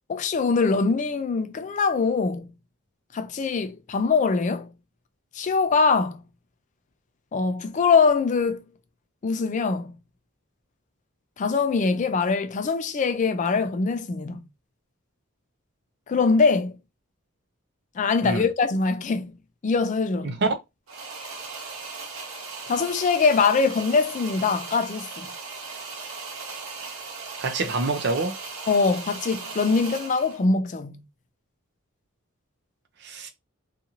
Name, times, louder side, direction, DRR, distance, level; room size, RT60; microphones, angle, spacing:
voice 1, 0.1-2.5 3.1-4.7 5.3-6.2 7.3-8.6 9.2-9.9 11.4-14.4 16.1-16.7 18.0-19.3 19.6-20.3 22.7-25.3 28.7-31.0, left 4 dB, 35° left, 0.3 m, -23 dB
voice 2, 20.2-20.6 27.4-28.4 33.0-33.3, right 3 dB, 55° right, 0.5 m, -26 dB
sound 1, 20.9-30.4, right 4 dB, 85° right, 0.8 m, -38 dB
2.6 x 2.4 x 2.8 m
head